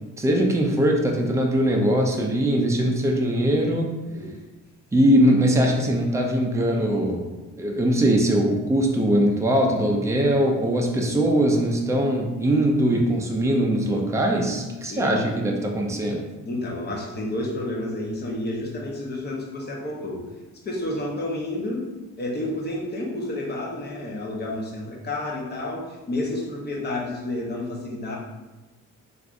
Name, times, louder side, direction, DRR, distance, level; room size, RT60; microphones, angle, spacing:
voice 1, 0.2-3.9 4.9-7.2 7.5-16.2, right 1 dB, 10° right, 0 dB, 0.5 m, -21 dB
voice 2, 14.9-15.2 16.4-20.2 20.6-28.2, left 1 dB, 35° left, -2 dB, 0.8 m, -30 dB
3.4 x 2.6 x 2.5 m, 1.1 s
cardioid pair, 90°, 30 cm